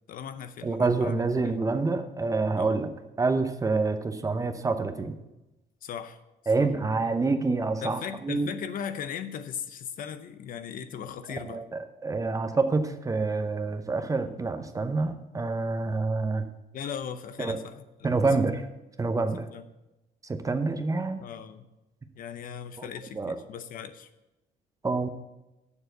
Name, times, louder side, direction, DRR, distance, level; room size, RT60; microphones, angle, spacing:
voice 1, 0.1-1.1 1.4-1.6 2.6-2.8 5.8-6.2 6.6-6.7 7.8-11.6 16.7-18.1 19.5-19.6 21.2-21.7 22.1-24.1, left 8 dB, 55° left, 11 dB, 0.7 m, -38 dB
voice 2, 0.6-2.9 3.2-5.2 6.5-8.5 11.4-16.5 17.4-17.6 18.0-18.7 19.0-19.5 20.3-21.2 22.8-22.9 23.2-23.3 24.8-25.1, right 3 dB, 20° right, 8 dB, 0.8 m, -27 dB
6.9 x 6.8 x 7.9 m, 0.97 s
cardioid pair, 110°, 17 cm